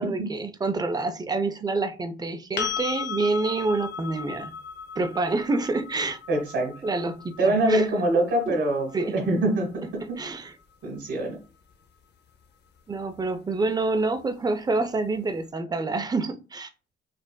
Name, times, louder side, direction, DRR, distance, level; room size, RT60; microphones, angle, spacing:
voice 1, 0.0-4.5 5.0-6.2 6.8-7.9 8.5-8.6 8.9-9.1 10.2-10.5 12.9-16.7, right 3 dB, 20° right, 0.4 m, -27 dB
sound 1, 2.6-10.4 13.2-13.3, left 6 dB, 60° left, 0.6 m, -37 dB
voice 2, 6.3-6.7 7.4-10.2 10.8-11.4, right 1 dB, 75° right, 1.2 m, -24 dB
4.9 x 2.4 x 2.2 m
cardioid pair, 90°, 20 cm